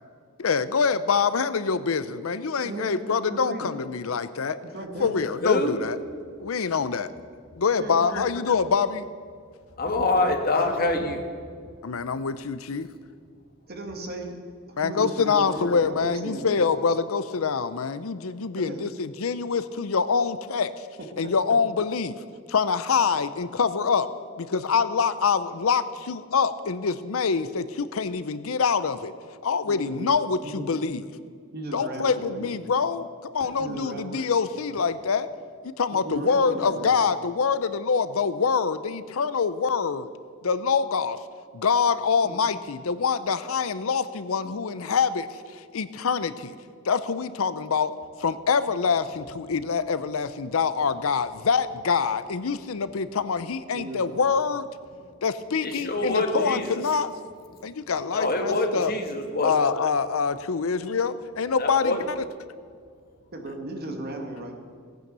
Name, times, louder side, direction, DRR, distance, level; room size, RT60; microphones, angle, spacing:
voice 1, 0.4-4.6 5.0-6.0 6.4-7.1 7.6-9.1 11.8-12.9 14.8-20.7 21.2-22.1 22.5-24.1 24.4-29.1 29.4-31.0 31.7-33.1 33.3-35.3 35.6-40.1 40.4-41.2 41.5-46.5 46.8-47.9 48.2-54.7 55.2-57.1 57.6-58.9 59.4-62.2, left 5 dB, 75° left, 14 dB, 0.6 m, -25 dB
voice 2, 2.6-3.7 4.7-5.2 7.8-8.3 10.6-11.1 13.7-14.4 14.7-16.6 18.6-18.9 21.0-21.3 29.7-30.1 30.4-30.8 31.5-32.5 33.6-34.2 35.9-36.9 42.2-42.4 53.7-54.1 63.3-64.5, right 1 dB, 50° right, 3 dB, 2.0 m, -36 dB
voice 3, 5.4-5.7 9.8-11.2 55.6-56.8 58.1-59.5 61.6-62.0, left 2 dB, 45° left, 5 dB, 1.6 m, -25 dB
sound 1, 32.1-32.3 33.4-33.6 34.7-34.9 36.1-36.3, left 1 dB, 10° right, 3.2 m, -46 dB
17.5 x 9.1 x 6.8 m, 2.1 s
head